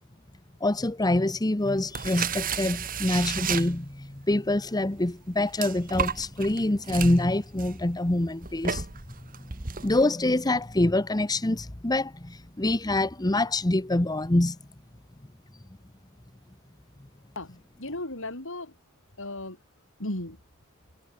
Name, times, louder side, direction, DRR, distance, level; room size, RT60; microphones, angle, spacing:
voice 1, 0.6-8.8 9.8-14.6, left 1 dB, 15° left, 0.9 m, -25 dB
sound 1, 1.8-4.2 4.8-10.1, right 7 dB, 40° right, 1.6 m, -33 dB
voice 2, 17.3-18.7 19.2-19.6 20.0-20.4, left 1 dB, 60° left, 4.9 m, -35 dB
head